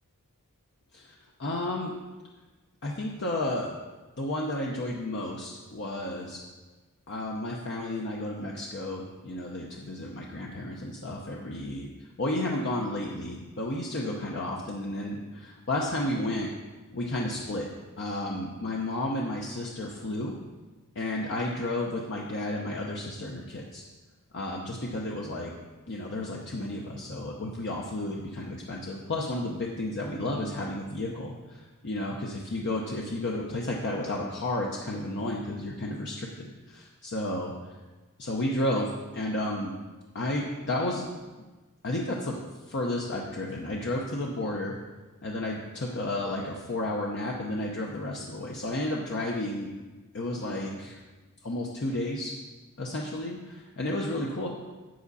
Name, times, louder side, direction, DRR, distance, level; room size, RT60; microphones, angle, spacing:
voice 1, 0.9-1.9 2.8-3.7 4.2-6.4 7.1-16.5 16.9-17.7 18.0-20.3 20.9-23.8 24.3-25.5 25.9-37.5 38.2-39.7 40.1-41.1 41.8-42.3 42.7-44.8 45.2-49.7 50.1-51.0 51.4-52.3 52.8-54.5, left 1 dB, 50° left, -2 dB, 0.8 m, -32 dB
8.1 x 7.7 x 4.1 m, 1.2 s
head